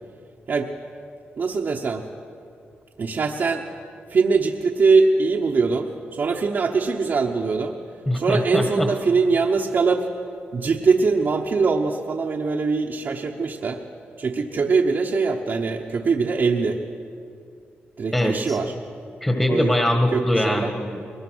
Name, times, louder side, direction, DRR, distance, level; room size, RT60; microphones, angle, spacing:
voice 1, 1.4-2.0 3.0-3.6 4.1-7.8 8.1-10.1 10.5-13.8 14.2-16.8 18.0-18.7 19.5-19.7 20.1-20.7, right 4 dB, 55° right, 0 dB, 1.1 m, -22 dB
voice 2, 8.1-8.9 18.1-18.6 19.2-21.2, left 1 dB, 10° left, 3 dB, 1.5 m, -22 dB
21.5 x 20.0 x 6.3 m, 2.6 s
cardioid pair, 80°, 4 cm